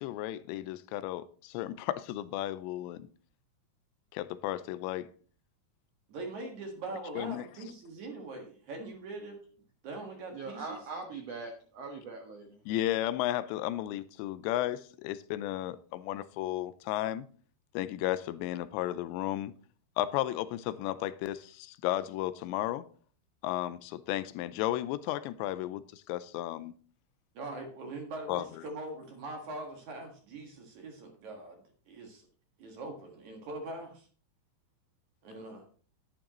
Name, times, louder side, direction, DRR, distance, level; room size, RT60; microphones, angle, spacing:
voice 1, 0.0-3.1 4.1-5.1 7.1-7.4 12.7-17.3 17.7-19.5 20.0-22.9 23.4-26.7 28.3-28.5, left 14 dB, 90° left, 2.9 m, -34 dB
voice 2, 6.1-9.4 9.8-10.8 27.3-31.6 31.9-32.3 32.6-34.1 35.2-35.6, right 2 dB, 55° right, 2.6 m, -42 dB
voice 3, 10.3-12.6, right 4 dB, 75° right, 1.4 m, -41 dB
11.5 x 11.0 x 3.0 m
omnidirectional pair, 5.0 m